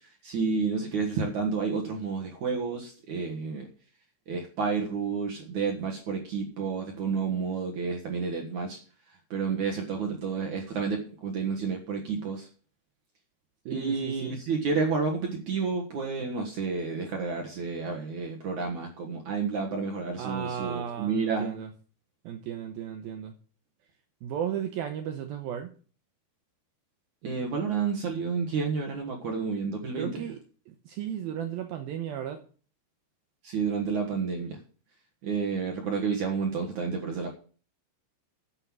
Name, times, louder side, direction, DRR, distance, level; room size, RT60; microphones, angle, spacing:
voice 1, 0.2-3.7 4.3-8.8 9.3-12.5 13.7-21.5 27.2-30.3 33.4-34.6 35.2-37.3, right 5 dB, 60° right, 2.2 m, -30 dB
voice 2, 13.7-14.4 20.2-21.7 22.3-23.3 24.2-25.7 30.0-30.4 30.9-32.4, right 9 dB, 90° right, 2.1 m, -34 dB
9.8 x 8.0 x 7.4 m
omnidirectional pair, 5.4 m